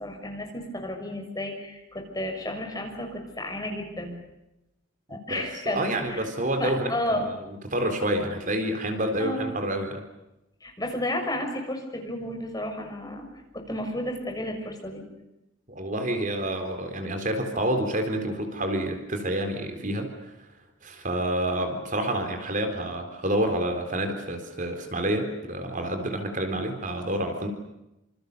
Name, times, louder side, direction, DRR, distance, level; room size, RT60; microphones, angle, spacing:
voice 1, 0.0-4.2 5.1-6.3 6.6-7.3 9.2-9.5 10.6-13.3 13.5-15.0, left 1 dB, 20° left, 3 dB, 6.4 m, -32 dB
voice 2, 5.4-6.9 7.7-10.0 15.7-20.3 20.8-27.5, right 1 dB, 40° right, 6 dB, 4.0 m, -28 dB
28.5 x 27.5 x 6.8 m, 0.91 s
head